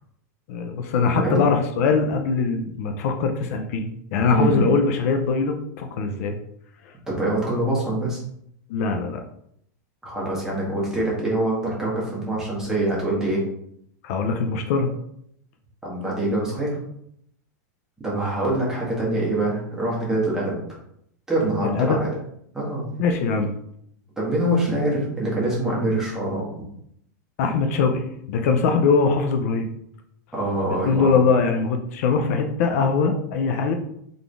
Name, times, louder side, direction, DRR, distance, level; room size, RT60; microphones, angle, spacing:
voice 1, 0.5-6.3 8.7-9.2 14.0-14.9 21.6-22.0 23.0-23.5 27.4-29.7 30.8-33.7, left 4 dB, 60° left, 5 dB, 0.6 m, -22 dB
voice 2, 4.3-4.7 7.1-8.2 10.0-13.4 15.8-16.8 18.0-20.6 21.3-22.1 22.5-22.9 24.2-26.4 30.3-31.2, right 1 dB, 5° right, -6 dB, 1.6 m, -24 dB
3.9 x 3.7 x 3.4 m, 0.71 s
supercardioid pair, 150°, 10 cm